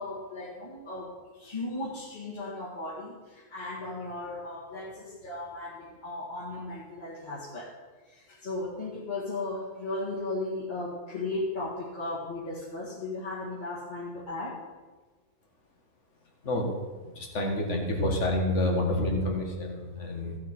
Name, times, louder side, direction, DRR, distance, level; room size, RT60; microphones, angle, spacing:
voice 1, 0.0-7.7 8.1-14.6, left 2 dB, 30° left, -8 dB, 2.3 m, -36 dB
voice 2, 16.4-16.8 17.2-20.4, left 1 dB, 55° left, 1 dB, 2.1 m, -28 dB
15.0 x 7.5 x 4.5 m, 1.3 s
omnidirectional pair, 1.5 m